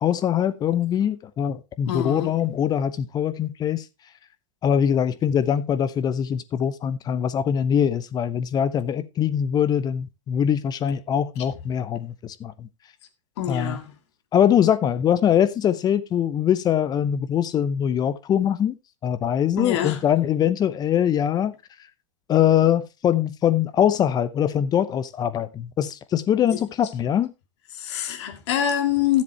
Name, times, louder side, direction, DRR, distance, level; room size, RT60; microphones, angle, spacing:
voice 1, 0.0-3.8 4.6-12.7 13.5-13.8 14.3-18.8 19.0-21.5 22.3-27.3, left 9 dB, 25° left, 0.8 m, -22 dB
voice 2, 1.9-2.4 13.4-14.0 19.6-20.0 26.5-26.6 27.7-29.2, left 10 dB, 55° left, 2.2 m, -25 dB
13.5 x 7.5 x 3.2 m
hypercardioid pair, 110°, 17 cm